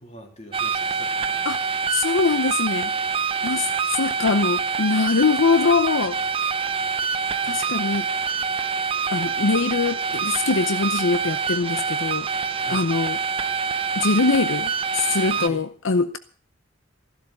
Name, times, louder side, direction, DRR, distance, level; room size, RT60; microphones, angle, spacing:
voice 1, 0.0-1.6 12.2-12.8 13.4-13.5 15.3-15.6, equal, 35° left, 3.4 m, -43 dB
sound 1, 0.5-15.5, right 5 dB, 30° right, 0.6 m, -26 dB
voice 2, 1.9-2.9 3.4-6.2 7.4-8.1 9.1-12.3 12.7-13.2 14.0-16.2, left 4 dB, 75° left, 0.7 m, -23 dB
15.0 x 12.0 x 6.6 m
head